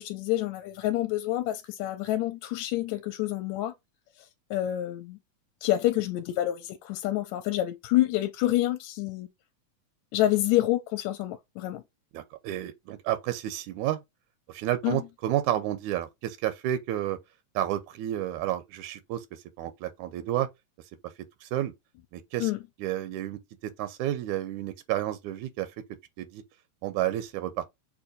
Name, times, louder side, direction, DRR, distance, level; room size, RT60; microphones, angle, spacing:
voice 1, 0.0-3.7 4.5-5.2 5.6-9.3 10.1-11.8 14.8-15.0 22.4-22.6, left 15 dB, 80° left, 1.8 m, -27 dB
voice 2, 12.1-14.0 14.5-17.2 17.6-19.3 19.6-20.5 21.4-21.7 22.1-22.5 22.8-23.4 23.8-25.7 26.2-26.4 26.8-27.7, right 12 dB, 85° right, 2.0 m, -30 dB
6.6 x 2.9 x 2.5 m
omnidirectional pair, 3.4 m